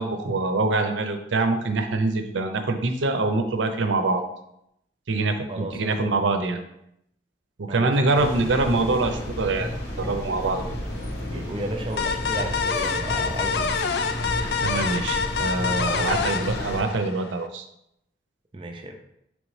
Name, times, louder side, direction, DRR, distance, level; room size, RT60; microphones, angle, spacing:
voice 1, 0.0-4.2 5.1-6.6 7.6-9.7 10.0-10.6 14.2-17.6, right 3 dB, 75° right, 7 dB, 0.5 m, -24 dB
voice 2, 5.5-6.1 7.7-8.3 11.3-13.7 15.8-16.3 18.5-18.9, right 2 dB, 25° right, 4 dB, 0.4 m, -34 dB
sound 1, 8.1-16.8, left 1 dB, 80° left, 1.4 m, -32 dB
sound 2, 12.0-17.4, left 5 dB, 55° left, 0.3 m, -27 dB
5.2 x 3.2 x 3.2 m, 0.78 s
head